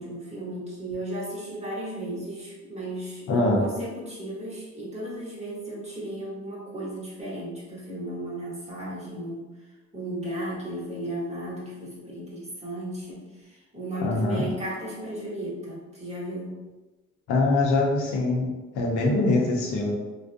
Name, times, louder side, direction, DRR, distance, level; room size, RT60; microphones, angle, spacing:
voice 1, 0.0-9.5 9.9-16.6, right 1 dB, 20° right, -6 dB, 0.9 m, -35 dB
voice 2, 3.3-3.7 14.0-14.4 17.3-19.9, left 2 dB, 80° left, -2 dB, 0.6 m, -23 dB
2.5 x 2.0 x 2.4 m, 1.2 s
cardioid pair, 90°, 30 cm